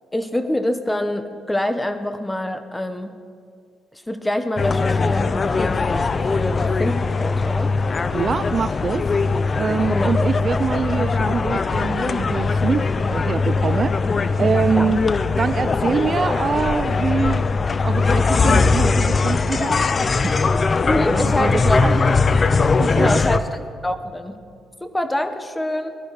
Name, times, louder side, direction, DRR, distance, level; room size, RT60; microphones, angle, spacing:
voice 1, 0.1-3.1 4.1-7.7 9.9-10.1 14.8-14.9 20.9-22.2 23.0-23.6 23.8-24.4 24.8-26.0, left 1 dB, 10° left, 9 dB, 1.1 m, -25 dB
sound 1, 4.6-23.4, left 4 dB, 35° left, 0.5 m, -20 dB
voice 2, 8.1-9.1 9.5-15.0 15.4-17.5 17.7-20.4 21.1-22.2 22.8-23.2, right 6 dB, 45° right, 13 dB, 0.4 m, -25 dB
19.0 x 13.0 x 5.0 m, 2.3 s
cardioid pair, 90°, 0 cm